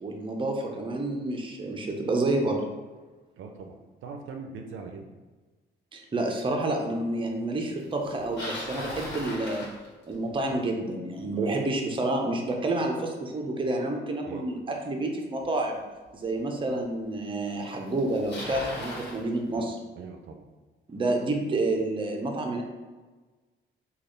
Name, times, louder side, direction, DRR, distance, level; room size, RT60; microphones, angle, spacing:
voice 1, 0.0-2.6 5.9-9.7 10.1-15.8 16.1-19.8 20.9-22.6, right 2 dB, 25° right, 2 dB, 0.6 m, -29 dB
voice 2, 3.4-5.1 14.2-14.5 19.5-20.5, right 5 dB, 75° right, 3 dB, 0.5 m, -42 dB
Bicycle, 8.0-10.4 15.4-15.5 16.3-16.4 17.5-17.6 17.8-19.2, left 1 dB, 60° left, 1.3 m, -38 dB
3.3 x 2.4 x 3.8 m, 1.3 s
cardioid pair, 90°, 20 cm